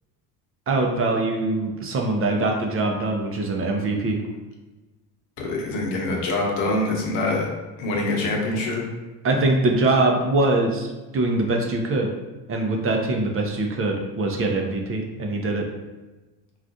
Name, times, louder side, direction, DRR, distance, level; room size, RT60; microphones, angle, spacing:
voice 1, 0.7-4.2 9.2-12.1 12.5-15.7, right 2 dB, 35° right, 2 dB, 0.5 m, -23 dB
voice 2, 5.4-7.5 7.8-8.8, left 2 dB, 80° left, 0 dB, 0.9 m, -24 dB
3.5 x 2.4 x 2.6 m, 1.2 s
supercardioid pair, 90°, 41 cm